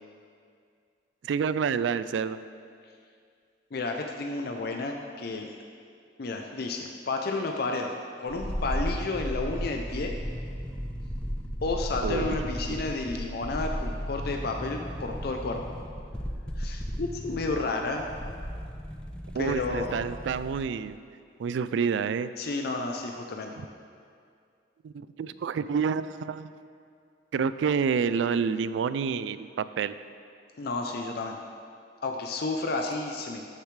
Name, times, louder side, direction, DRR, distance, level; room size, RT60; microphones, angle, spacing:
voice 1, 1.2-2.4 12.0-12.4 12.7-12.8 19.3-21.0 21.4-22.3 24.8-26.5 27.3-29.9, right 6 dB, 90° right, 14 dB, 0.3 m, -28 dB
voice 2, 3.7-5.5 6.2-7.9 8.2-10.2 11.6-15.6 16.6-18.1 19.4-19.9 22.4-23.5 30.6-31.4 32.0-33.4, left 3 dB, 60° left, 3 dB, 0.5 m, -31 dB
sound 1, 8.3-20.7 20.9-21.0, equal, 5° left, 0.6 m, -35 dB
13.5 x 6.7 x 3.3 m, 2.3 s
head